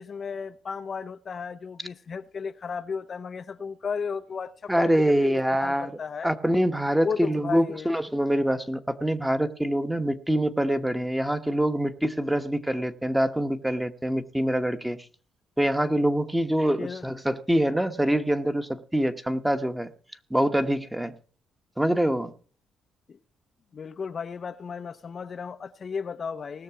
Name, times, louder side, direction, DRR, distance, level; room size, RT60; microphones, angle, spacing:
voice 1, 0.0-4.9 5.2-6.3 7.0-7.9 16.8-17.0 23.1-23.2 23.7-26.6, left 6 dB, 45° left, 0.6 m, -34 dB
voice 2, 4.7-5.9 6.2-15.0 15.6-19.9 20.3-21.2 21.8-22.3, right 1 dB, 5° right, 1.2 m, -25 dB
19.0 x 6.7 x 4.8 m
cardioid pair, 90°, 0 cm